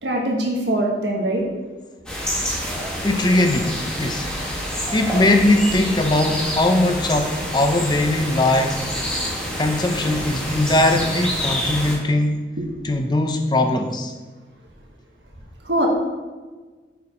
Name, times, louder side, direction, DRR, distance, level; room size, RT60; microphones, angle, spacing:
voice 1, 0.0-1.4 15.7-15.9, right 1 dB, 80° right, -1 dB, 1.5 m, -22 dB
sound 1, 2.1-12.0, equal, 5° left, 1.4 m, -27 dB
voice 2, 3.0-4.3 4.9-8.8 9.6-12.4 12.8-14.1, left 1 dB, 25° left, 5 dB, 0.5 m, -20 dB
6.8 x 4.8 x 4.9 m, 1.3 s
head